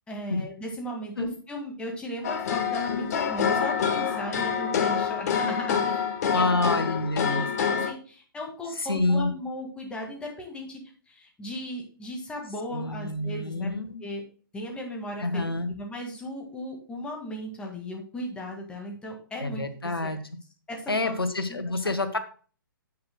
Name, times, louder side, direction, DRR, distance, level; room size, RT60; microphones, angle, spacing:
voice 1, 0.1-7.0 7.2-10.8 11.1-13.7 14.0-14.2 14.5-15.4 15.7-20.2 20.7-21.1 21.5-21.6, left 1 dB, 10° left, 1 dB, 1.9 m, -36 dB
sound 1, 2.2-7.9, left 7 dB, 45° left, 1.4 m, -27 dB
voice 2, 6.2-7.5 8.8-9.3 12.7-14.0 15.2-15.7 19.4-20.2 20.9-22.2, left 2 dB, 85° left, 8 dB, 1.7 m, -27 dB
10.5 x 8.7 x 2.2 m, 0.40 s
figure-of-eight pair, 130°, 12 cm